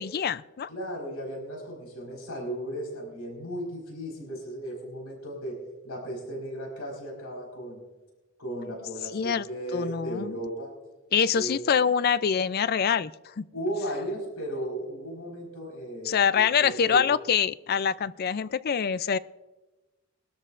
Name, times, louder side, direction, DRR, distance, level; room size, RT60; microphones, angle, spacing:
voice 1, 0.0-0.7 9.1-9.4 9.7-10.4 11.1-13.1 13.4-13.5 16.1-19.2, left 7 dB, 45° left, 16 dB, 0.4 m, -25 dB
voice 2, 0.7-5.6 5.8-7.8 8.4-10.7 11.3-11.6 13.5-17.1, right 1 dB, 90° left, -1 dB, 4.7 m, -35 dB
23.0 x 13.0 x 2.5 m, 1.1 s
head